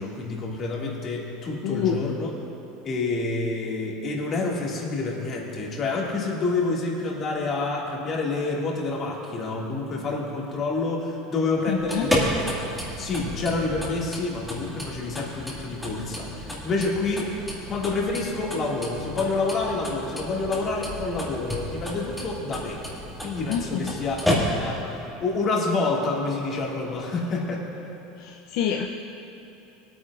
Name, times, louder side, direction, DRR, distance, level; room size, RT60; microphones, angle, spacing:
voice 1, 0.0-2.3 2.8-12.5 13.0-17.4 17.7-22.8 23.2-24.2 24.6-27.7, left 3 dB, 30° left, -2 dB, 2.0 m, -28 dB
voice 2, 1.6-2.0 11.7-12.1 23.5-23.9 28.2-28.9, left 8 dB, 60° left, 1 dB, 0.6 m, -27 dB
sound 1, 11.8-24.9, left 1 dB, ahead, 2.0 m, -31 dB
20.0 x 9.3 x 2.5 m, 3.0 s
supercardioid pair, 140°, 0 cm